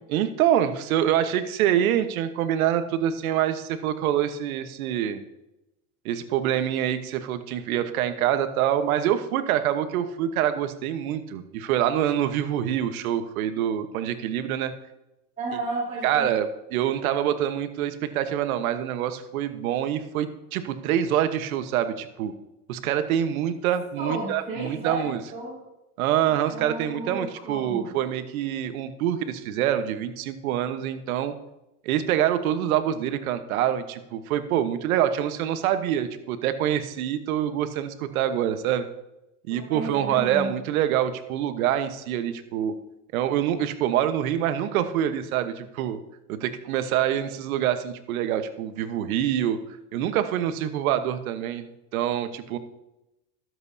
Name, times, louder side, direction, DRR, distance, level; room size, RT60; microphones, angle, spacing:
voice 1, 0.1-5.2 6.0-14.7 16.0-22.3 22.7-25.2 26.0-31.3 31.8-38.8 39.5-42.8 43.1-46.0 46.3-49.6 49.9-51.7 51.9-52.6, right 10 dB, 85° right, 10 dB, 1.2 m, -25 dB
voice 2, 15.4-16.3 24.0-25.6 26.5-27.9 39.5-40.5, right 2 dB, 20° right, -7 dB, 4.0 m, -33 dB
22.0 x 8.0 x 2.7 m, 0.92 s
supercardioid pair, 100°, 41 cm